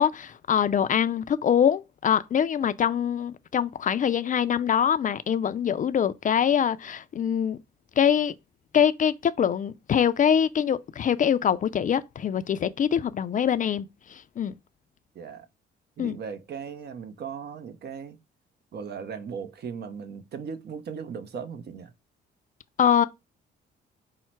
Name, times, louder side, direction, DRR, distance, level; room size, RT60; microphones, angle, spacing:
voice 1, 0.0-7.6 8.0-8.3 8.7-14.5 16.0-16.2 22.8-23.1, left 8 dB, 40° left, 0.4 m, -24 dB
voice 2, 15.1-15.5 16.0-18.2 18.7-21.9, right 6 dB, 55° right, 0.8 m, -37 dB
5.5 x 2.1 x 4.5 m
cardioid pair, 90°, 20 cm